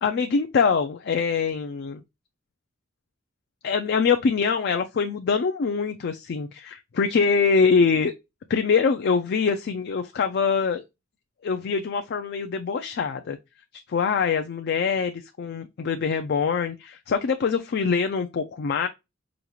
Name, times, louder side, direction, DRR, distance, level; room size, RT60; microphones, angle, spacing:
voice 1, 0.0-2.0 3.6-8.1 8.5-10.8 11.4-13.4 13.7-18.9, left 5 dB, 55° left, 0.4 m, -24 dB
5.0 x 2.4 x 2.9 m
head